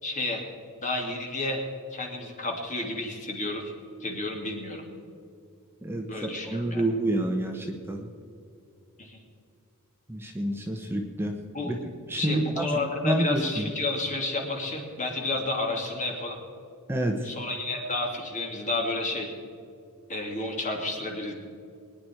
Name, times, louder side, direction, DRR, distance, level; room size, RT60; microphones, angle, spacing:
voice 1, 0.0-0.4 0.8-1.6 1.9-3.6 4.0-4.8 6.1-6.8 9.0-9.2 11.5-11.7 12.2-16.4 17.2-19.3 20.1-21.3, left 2 dB, 35° left, 1 dB, 2.7 m, -31 dB
voice 2, 5.8-8.1 10.1-11.3 11.6-11.8 12.1-12.7 13.0-13.7 16.9-17.3, right 1 dB, 10° right, 2 dB, 1.1 m, -28 dB
23.0 x 10.5 x 4.6 m, 2.4 s
head